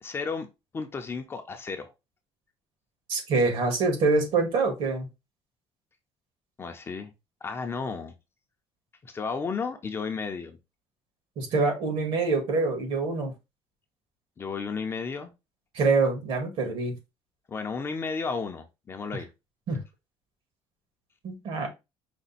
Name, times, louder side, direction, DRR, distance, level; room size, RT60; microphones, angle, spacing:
voice 1, 0.0-0.5 0.7-1.9 6.6-7.1 7.4-8.2 9.0-10.6 14.4-15.3 17.5-19.3, left 5 dB, 25° left, 0.6 m, -33 dB
voice 2, 3.1-5.1 11.4-13.3 15.7-17.0 19.7-19.8 21.2-21.7, right 3 dB, 65° right, 1.7 m, -25 dB
5.1 x 2.2 x 4.0 m
cardioid pair, 160°, 10 cm